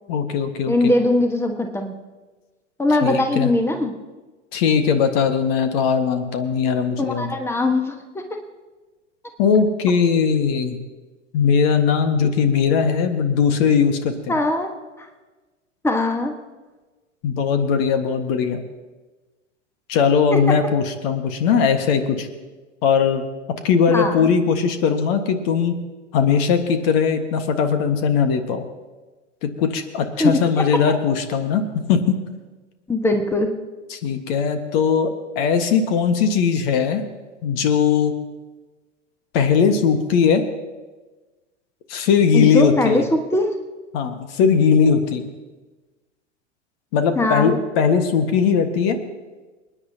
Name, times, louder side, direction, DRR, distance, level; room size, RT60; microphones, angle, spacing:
voice 1, 0.1-0.9 3.0-3.5 4.5-7.3 9.4-10.8 11.3-14.3 17.2-18.6 19.9-22.3 22.8-23.3 23.6-25.8 26.1-28.6 29.4-32.1 33.9-37.0 37.4-38.1 39.3-40.4 41.9-43.0 43.9-45.3 46.9-49.0, left 6 dB, 50° left, 7 dB, 1.6 m, -19 dB
voice 2, 0.7-1.9 2.8-3.9 7.0-8.2 14.3-14.7 15.0-15.1 15.8-16.3 20.3-20.4 23.9-24.3 30.2-30.6 32.9-33.5 42.3-43.5 47.2-47.5, left 2 dB, 5° left, 5 dB, 1.3 m, -20 dB
29.0 x 9.9 x 2.8 m, 1.2 s
figure-of-eight pair, 90°, 37 cm